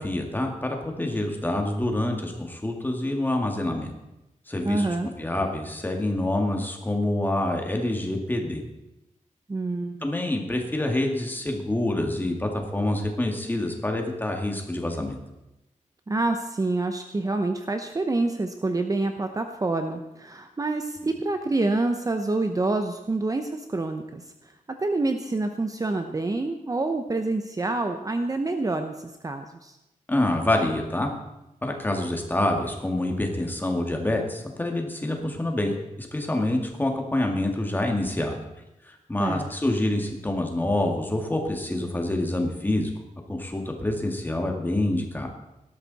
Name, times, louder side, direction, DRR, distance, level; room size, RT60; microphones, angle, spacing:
voice 1, 0.0-3.9 4.5-8.6 10.0-15.2 30.1-31.1 31.6-38.4 39.1-42.9 43.3-45.3, left 1 dB, 15° left, 2 dB, 2.1 m, -27 dB
voice 2, 4.6-5.1 9.5-10.1 16.1-24.5 24.8-29.8 39.2-39.5, right 2 dB, 25° right, 6 dB, 0.8 m, -27 dB
18.0 x 13.0 x 4.1 m, 0.92 s
wide cardioid pair, 170°, 13 cm